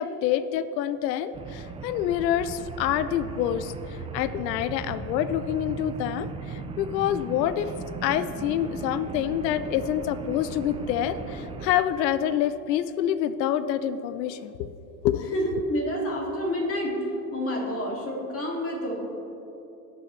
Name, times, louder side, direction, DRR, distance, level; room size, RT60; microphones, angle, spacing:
voice 1, 0.0-7.7 8.0-14.7 15.0-15.6, left 10 dB, 80° left, 13 dB, 0.6 m, -27 dB
sound 1, 1.3-11.8, right 4 dB, 15° right, 0.3 m, -37 dB
voice 2, 15.3-17.1 17.3-18.9, equal, 25° left, -1 dB, 2.3 m, -28 dB
17.5 x 6.1 x 3.2 m, 3.0 s
hypercardioid pair, 100°, 49 cm